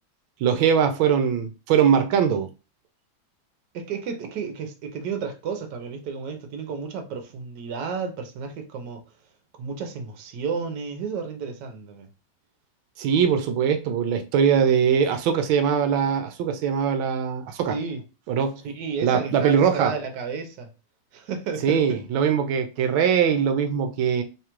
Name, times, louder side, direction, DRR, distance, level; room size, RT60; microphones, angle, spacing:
voice 1, 0.4-2.5 13.0-17.8 18.3-18.6 19.0-19.9 21.6-24.2, right 7 dB, 85° right, 1.4 m, -21 dB
voice 2, 3.7-9.0 9.6-12.1 17.7-18.0 18.7-20.7 21.1-22.0, right 5 dB, 65° right, 1.3 m, -32 dB
3.4 x 2.4 x 4.4 m
omnidirectional pair, 2.2 m